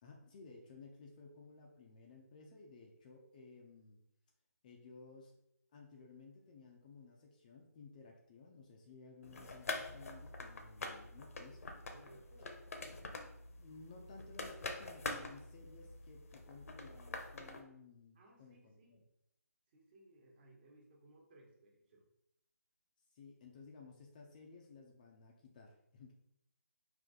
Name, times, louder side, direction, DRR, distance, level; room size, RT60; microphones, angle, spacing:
voice 1, 0.0-4.0 4.6-5.3 5.7-11.6 12.4-13.0 13.6-19.0 23.1-26.1, left 4 dB, 25° left, 1 dB, 0.5 m, -57 dB
sound 1, 9.2-17.6, left 3 dB, 55° left, 0.7 m, -46 dB
voice 2, 11.9-12.6 18.1-19.1 19.7-22.0, right 1 dB, 35° right, 0 dB, 1.2 m, -63 dB
5.3 x 2.7 x 3.7 m, 0.80 s
figure-of-eight pair, 155°, 9 cm